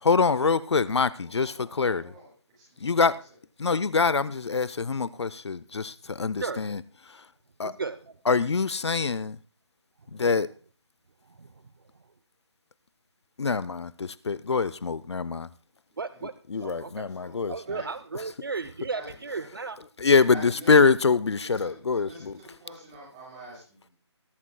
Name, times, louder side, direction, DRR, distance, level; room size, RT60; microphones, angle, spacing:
voice 1, 0.0-2.1 2.8-3.2 3.6-6.8 7.6-7.7 8.3-9.4 10.1-10.5 13.4-15.5 16.5-17.5 20.0-22.3, left 4 dB, 70° left, 0.6 m, -24 dB
voice 2, 0.7-2.3 2.6-3.1 15.9-16.2 16.6-16.8 17.1-17.4 17.6-17.8 18.9-19.1 20.3-20.9 21.4-23.9, right 1 dB, 15° right, 6.9 m, -47 dB
voice 3, 7.6-8.1 11.4-11.5 16.0-16.3 16.6-17.1 17.5-19.8, right 4 dB, 50° right, 0.7 m, -34 dB
21.5 x 12.0 x 2.2 m
hypercardioid pair, 175°, 15 cm